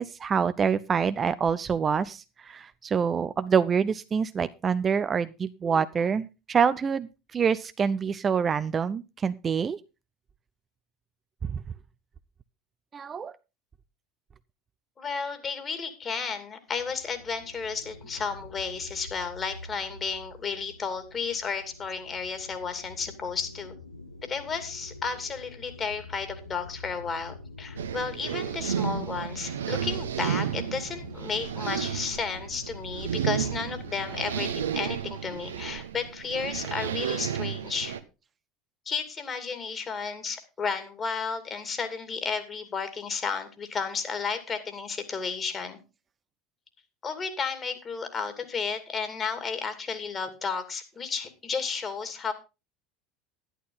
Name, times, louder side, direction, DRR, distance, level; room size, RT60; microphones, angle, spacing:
voice 1, 0.0-9.8 11.5-11.6 12.9-13.4, right 6 dB, 30° right, 13 dB, 0.6 m, -26 dB
voice 2, 15.0-23.8 24.2-38.0 38.9-45.8 47.0-52.3, left 5 dB, 30° left, 9 dB, 2.6 m, -33 dB
sound 1, 16.7-34.7, left 2 dB, 85° left, 0.9 m, -46 dB
sound 2, 27.8-38.0, right 8 dB, 75° right, 1.0 m, -32 dB
11.5 x 11.0 x 4.0 m, 0.28 s
figure-of-eight pair, 70°, 0 cm